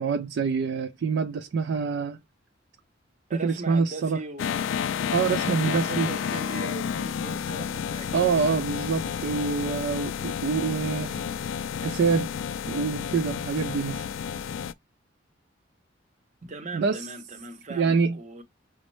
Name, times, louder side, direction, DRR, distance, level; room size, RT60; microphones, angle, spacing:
voice 1, 0.0-2.2 3.3-4.2 5.1-6.1 8.1-11.2 11.8-12.3 12.7-14.0 16.7-17.1 17.7-18.2, right 5 dB, 65° right, 0.3 m, -26 dB
voice 2, 3.3-4.5 5.4-8.5 16.4-18.4, right 3 dB, 40° right, 0.7 m, -39 dB
sound 1, 4.4-14.7, left 7 dB, 90° left, 0.3 m, -31 dB
5.1 x 2.0 x 3.0 m
head